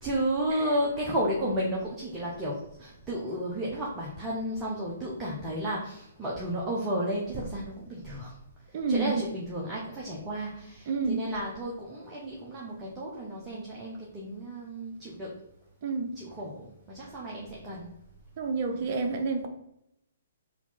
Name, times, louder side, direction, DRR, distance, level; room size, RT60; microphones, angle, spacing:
voice 1, 0.0-8.4 8.9-15.3 16.1-17.9 18.7-18.9, right 1 dB, 15° right, -5 dB, 0.8 m, -33 dB
voice 2, 8.7-9.2 10.9-11.2 15.8-16.2 18.4-19.5, right 4 dB, 40° right, 5 dB, 0.5 m, -29 dB
4.1 x 2.7 x 4.4 m, 0.80 s
figure-of-eight pair, 125°, 0 cm